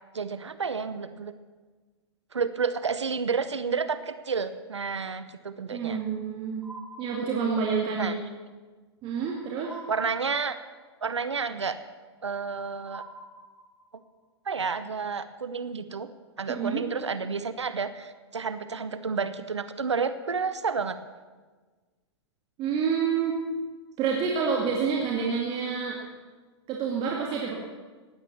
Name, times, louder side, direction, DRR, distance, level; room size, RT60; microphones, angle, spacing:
voice 1, 0.1-1.3 2.3-6.0 8.0-8.1 9.9-10.6 11.0-11.8 12.2-13.0 14.5-16.1 16.4-21.0, right 5 dB, 90° right, 12 dB, 0.9 m, -30 dB
voice 2, 5.7-6.7 7.0-8.2 9.0-9.7 16.5-16.8 22.6-23.4 24.0-26.0 26.7-27.5, right 6 dB, 35° right, -1 dB, 2.4 m, -28 dB
sound 1, 6.6-7.9 9.6-10.9 12.9-14.1, right 2 dB, 5° right, 1.9 m, -46 dB
16.0 x 10.5 x 7.0 m, 1.4 s
hypercardioid pair, 110°, 15 cm